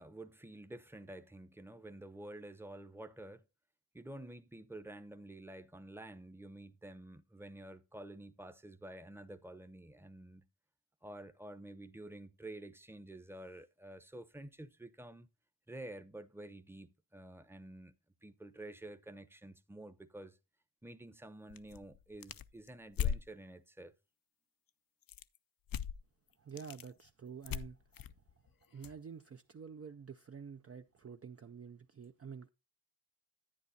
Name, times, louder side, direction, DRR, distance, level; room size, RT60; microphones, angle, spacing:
voice 1, 0.0-3.4 3.9-10.5 11.0-15.3 15.7-17.9 18.2-20.4 20.8-23.9, right 1 dB, 5° right, 0.8 m, -50 dB
sound 1, 21.5-23.3 25.0-25.4 25.7-26.0 26.3-26.9 27.4-28.9, left 9 dB, 60° left, 0.5 m, -39 dB
voice 2, 26.4-27.8 28.7-32.5, right 6 dB, 35° right, 0.5 m, -49 dB
10.5 x 9.3 x 2.7 m
cardioid pair, 60°, 41 cm